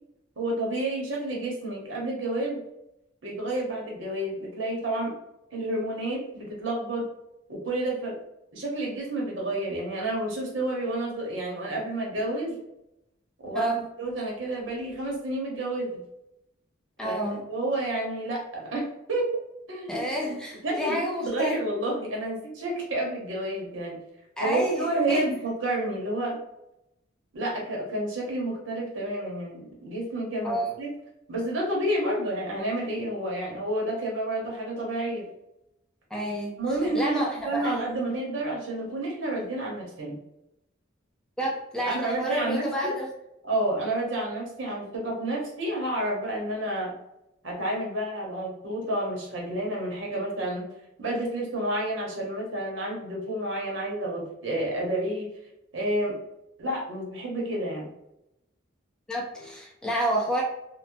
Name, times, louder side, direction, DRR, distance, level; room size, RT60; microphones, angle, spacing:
voice 1, 0.4-2.6 3.2-5.1 5.5-7.1 7.5-8.2 8.5-12.6 13.4-16.0 17.0-17.2 17.5-19.4 19.7-20.1 20.6-24.0 24.4-26.4 27.3-30.9 31.3-35.2 36.6-40.2 41.8-42.9 43.4-46.9 47.4-50.6 51.0-55.3 55.7-56.2 56.6-57.9, right 1 dB, 70° right, -2 dB, 0.9 m, -30 dB
voice 2, 17.0-17.5 19.9-21.6 24.4-25.2 30.4-30.7 36.1-37.8 41.4-43.1 59.1-60.4, equal, 5° left, -3 dB, 0.4 m, -29 dB
3.0 x 2.1 x 2.6 m, 0.85 s
head